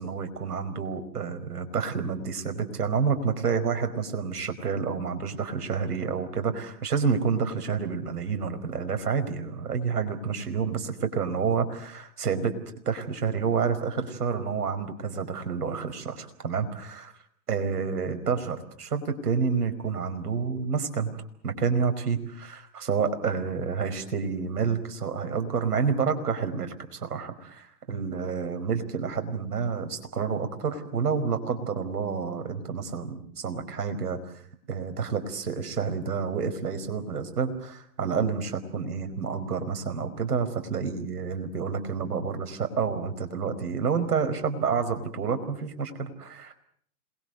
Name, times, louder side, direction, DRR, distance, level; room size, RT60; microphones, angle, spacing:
voice 1, 0.0-12.5 12.8-17.1 17.5-21.2 21.4-34.3 34.7-46.5, right 6 dB, 75° right, 8 dB, 5.0 m, -29 dB
27.5 x 22.0 x 8.0 m, 0.63 s
hypercardioid pair, 130°, 46 cm